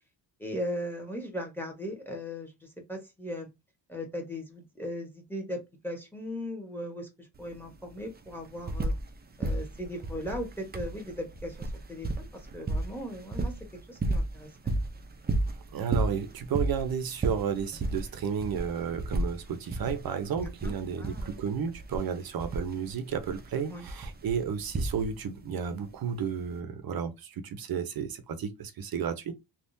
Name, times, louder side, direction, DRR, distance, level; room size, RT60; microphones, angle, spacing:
voice 1, 0.4-3.5 3.9-5.6 5.8-8.9 9.4-13.5 13.9-14.7 20.4-20.7 21.0-21.4 23.7-23.9, equal, 5° left, 1.1 m, -38 dB
sound 1, 7.3-7.4 7.7-9.1 9.4-25.4 26.4-26.5, right 2 dB, 25° right, 0.5 m, -33 dB
voice 2, 15.7-29.4, right 7 dB, 55° right, 0.8 m, -32 dB
3.5 x 2.4 x 2.6 m
cardioid pair, 110°, 42 cm